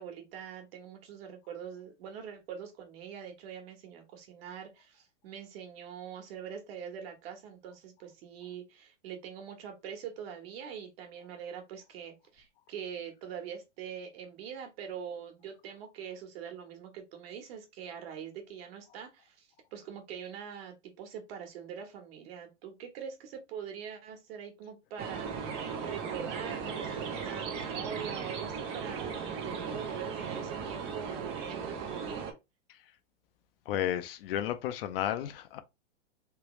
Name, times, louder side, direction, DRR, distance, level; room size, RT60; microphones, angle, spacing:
voice 1, 0.0-32.3, right 8 dB, 50° right, 1.2 m, -43 dB
sound 1, 25.0-32.3, right 6 dB, 15° right, 0.3 m, -37 dB
voice 2, 33.7-35.6, left 11 dB, 50° left, 0.5 m, -32 dB
3.3 x 2.9 x 3.0 m
hypercardioid pair, 130°, 37 cm